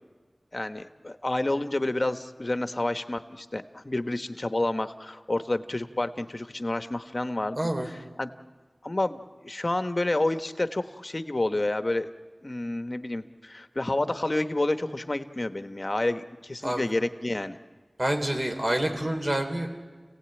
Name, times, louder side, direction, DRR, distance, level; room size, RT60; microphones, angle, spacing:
voice 1, 0.5-7.6 7.8-8.3 8.8-12.1 12.4-17.6, left 2 dB, 45° left, 9 dB, 1.1 m, -29 dB
voice 2, 7.6-7.9 16.6-16.8 18.0-19.7, right 1 dB, 45° right, 4 dB, 3.5 m, -27 dB
30.0 x 17.5 x 9.0 m, 1.4 s
wide cardioid pair, 55°, 0 cm